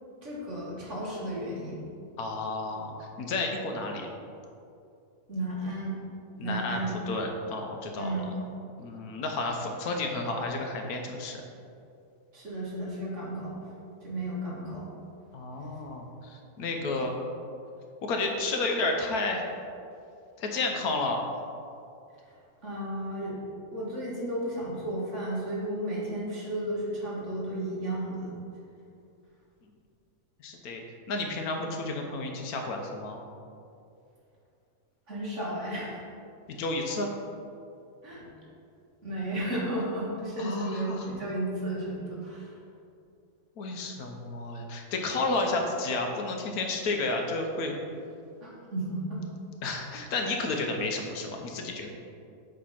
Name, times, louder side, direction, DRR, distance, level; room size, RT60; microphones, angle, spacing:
voice 1, 0.2-1.9 5.3-6.0 6.4-6.9 8.0-8.3 12.3-13.6 14.0-14.8 16.8-16.9 22.6-28.3 35.1-36.0 38.0-38.3 39.0-42.5 48.4-49.2, right 1 dB, 50° right, -6 dB, 1.9 m, -33 dB
voice 2, 2.2-4.1 6.4-6.8 7.1-8.3 8.8-11.4 15.3-17.2 18.0-19.4 20.4-21.2 30.4-30.8 31.1-33.2 36.5-37.1 40.4-41.1 43.6-47.8 49.6-51.9, left 2 dB, 70° left, 2 dB, 1.2 m, -31 dB
7.6 x 3.4 x 5.6 m, 2.5 s
omnidirectional pair, 1.7 m